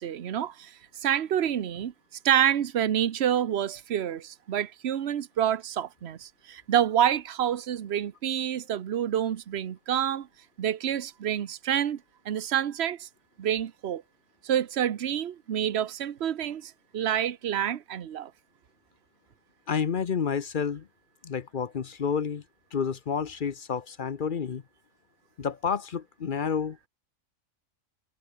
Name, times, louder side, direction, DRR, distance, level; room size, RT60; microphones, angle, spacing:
voice 1, 0.0-1.9 2.2-10.3 10.6-13.1 13.4-14.0 14.4-18.3, right 10 dB, 55° right, 1.1 m, -28 dB
voice 2, 19.7-20.9 21.2-22.4 22.7-24.6 25.4-26.9, left 6 dB, 45° left, 0.8 m, -30 dB
omnidirectional pair, 1.4 m